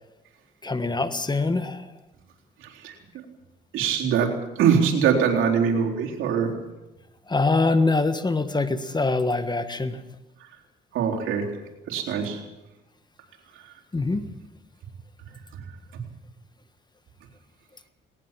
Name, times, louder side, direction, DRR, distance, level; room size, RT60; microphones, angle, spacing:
voice 1, 0.6-1.9 7.3-10.0 13.9-14.3, left 3 dB, 20° left, 11 dB, 1.5 m, -24 dB
voice 2, 3.7-6.6 10.9-11.5 11.9-12.4 15.9-16.0, right 7 dB, 85° right, -1 dB, 4.0 m, -23 dB
19.5 x 19.0 x 7.6 m, 1.0 s
cardioid pair, 90°, 20 cm